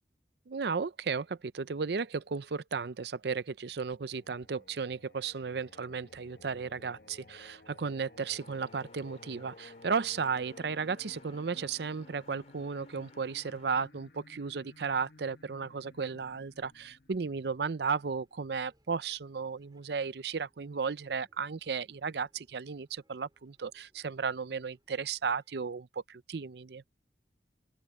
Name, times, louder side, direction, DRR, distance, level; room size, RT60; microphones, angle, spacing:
voice 1, 0.5-26.8, right 5 dB, 65° right, 0.5 m, -34 dB
Singing, 3.9-18.7, left 2 dB, 55° left, 1.1 m, -56 dB
sound 1, 8.4-13.8, left 3 dB, 35° left, 3.0 m, -59 dB
sound 2, 18.2-25.5, right 1 dB, 25° right, 5.4 m, -73 dB
open air
head